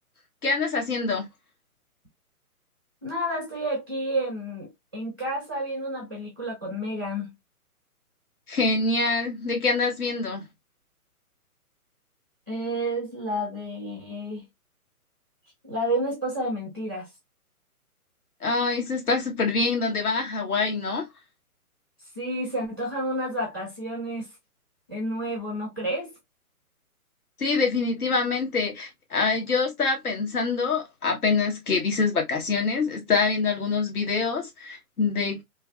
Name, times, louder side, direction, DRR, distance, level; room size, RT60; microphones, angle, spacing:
voice 1, 0.4-1.3 8.5-10.4 18.4-21.1 27.4-35.4, left 4 dB, 75° left, 1.5 m, -25 dB
voice 2, 3.0-7.3 12.5-14.4 15.6-17.1 22.2-24.3 24.9-26.1, right 1 dB, 15° right, 0.4 m, -30 dB
3.2 x 2.3 x 2.3 m
hypercardioid pair, 150°, 45 cm